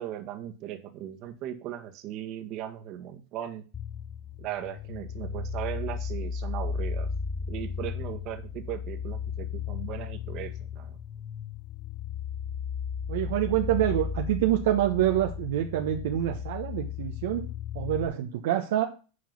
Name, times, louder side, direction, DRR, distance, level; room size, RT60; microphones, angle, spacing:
voice 1, 0.0-3.6 4.4-7.1 7.5-11.0, right 11 dB, 50° right, 6 dB, 1.7 m, -38 dB
sound 1, 3.7-18.1, left 6 dB, 25° left, 3.1 m, -35 dB
voice 2, 13.1-17.5 17.7-18.9, right 12 dB, 70° right, 4 dB, 1.2 m, -26 dB
9.9 x 4.8 x 5.4 m, 0.33 s
hypercardioid pair, 100°, 0 cm